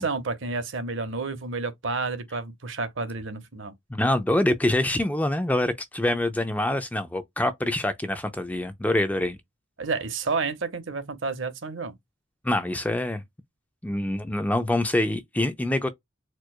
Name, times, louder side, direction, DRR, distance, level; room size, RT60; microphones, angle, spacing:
voice 1, 0.0-3.7 9.8-11.9, right 4 dB, 60° right, 0.9 m, -30 dB
voice 2, 3.9-9.4 12.4-13.2 13.8-15.9, left 1 dB, 5° left, 0.3 m, -25 dB
4.5 x 2.3 x 2.3 m
head